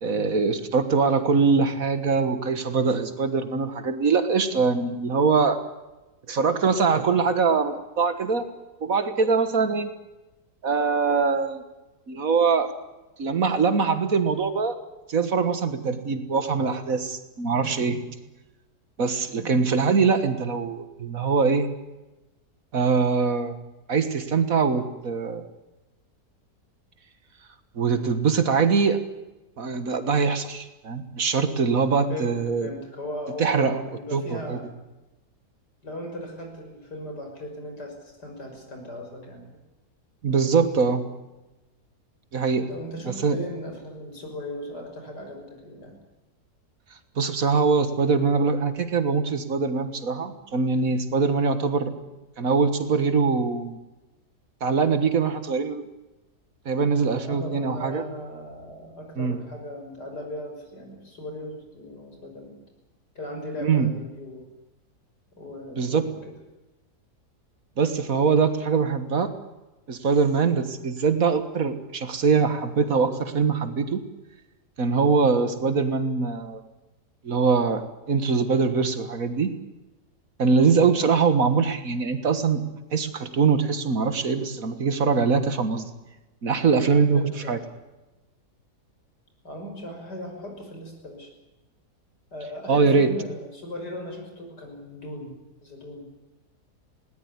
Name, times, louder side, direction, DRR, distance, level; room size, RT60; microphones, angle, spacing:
voice 1, 0.0-5.6 6.3-8.5 8.8-9.9 10.6-11.6 12.1-12.7 13.2-14.8 15.1-18.1 19.0-21.7 22.7-23.5 23.9-25.4 27.8-29.0 29.6-32.7 33.4-33.8 34.1-34.6 40.2-41.0 42.3-42.7 43.2-43.4 47.2-51.9 52.4-53.8 54.6-55.9 56.7-58.0 59.2-59.4 63.6-63.9 65.8-66.0 67.8-69.3 69.9-74.1 74.8-76.6 77.2-79.6 80.4-82.6 82.9-85.9 86.4-87.2 87.5-87.6 92.7-93.1, right 5 dB, 55° right, 10 dB, 2.0 m, -23 dB
voice 2, 32.1-34.6 35.8-39.4 42.7-45.9 57.2-62.5 63.1-64.5 65.4-66.2 75.6-75.8 87.1-87.5 89.4-91.3 92.3-95.4 95.6-96.0, equal, 85° left, 3 dB, 6.7 m, -38 dB
20.5 x 18.5 x 9.7 m, 1.1 s
omnidirectional pair, 1.7 m